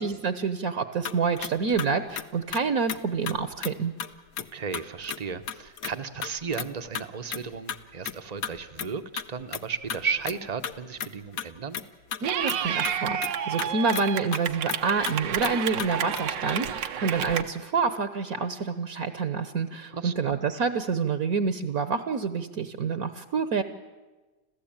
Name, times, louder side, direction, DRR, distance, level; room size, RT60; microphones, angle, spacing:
voice 1, 0.0-3.9 12.2-23.6, right 5 dB, 55° right, 10 dB, 1.3 m, -27 dB
sound 1, 1.1-2.6 2.9-3.0 3.3-3.4 3.6-3.7 4.0-4.1 4.4-4.5 4.7-5.2 5.5-5.9 6.2-6.7 7.0-7.1 7.3-7.8 8.1-8.2 8.4-8.5 8.8-8.9 9.2-9.3 9.5-10.0 10.2-10.4 10.6-11.5 11.7-11.8 12.1-13.0 13.2-13.3 13.6-14.0 14.3-14.4 14.7-14.8 15.1-15.2 15.4-15.5 15.8-15.9 16.2-16.3, left 8 dB, 60° left, 1.2 m, -33 dB
voice 2, 4.4-11.8 19.9-20.1, right 5 dB, 30° right, 10 dB, 0.7 m, -34 dB
Clapping / Cheering, 12.2-17.4, right 9 dB, 85° right, 1.7 m, -30 dB
27.0 x 15.5 x 8.8 m, 1.2 s
omnidirectional pair, 1.9 m